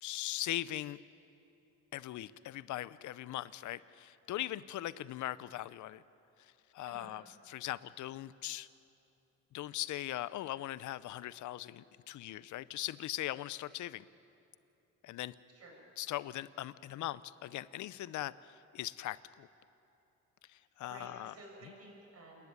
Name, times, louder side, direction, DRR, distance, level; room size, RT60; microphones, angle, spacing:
voice 1, 0.0-1.0 1.9-6.0 6.7-8.7 9.5-14.1 15.0-15.3 16.0-19.5 20.5-21.3, left 14 dB, 75° left, 17 dB, 0.7 m, -40 dB
voice 2, 6.8-7.2 15.5-15.7 20.6-22.5, right 2 dB, 55° right, -1 dB, 7.0 m, -53 dB
28.0 x 11.0 x 9.7 m, 2.8 s
cardioid pair, 90°, 30 cm